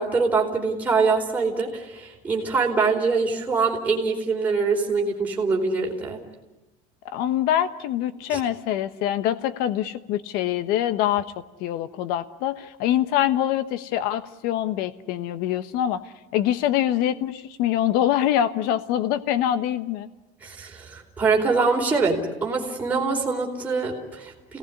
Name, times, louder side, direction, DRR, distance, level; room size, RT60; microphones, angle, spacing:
voice 1, 0.0-6.2 8.3-8.4 20.4-24.6, right 4 dB, 10° right, -2 dB, 4.4 m, -24 dB
voice 2, 7.0-11.2 11.6-16.0 16.3-20.1, left 11 dB, 65° left, 12 dB, 1.2 m, -24 dB
28.5 x 18.5 x 9.8 m, 1.1 s
cardioid pair, 175°, 17 cm